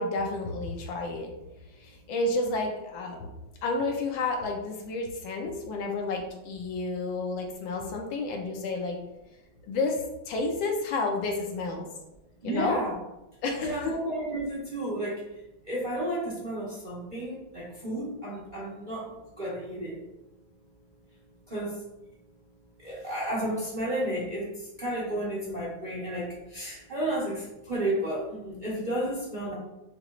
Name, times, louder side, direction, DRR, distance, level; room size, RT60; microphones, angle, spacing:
voice 1, 0.0-1.3 1.8-3.4 3.6-9.0 9.7-10.0 10.3-11.8 12.4-12.8 13.4-13.9, left 3 dB, 80° left, 2 dB, 1.5 m, -30 dB
voice 2, 12.4-12.9 13.6-15.2 15.6-20.0 21.5-21.8 22.8-29.5, right 1 dB, 35° right, -6 dB, 0.8 m, -32 dB
6.9 x 3.0 x 2.4 m, 0.93 s
omnidirectional pair, 2.1 m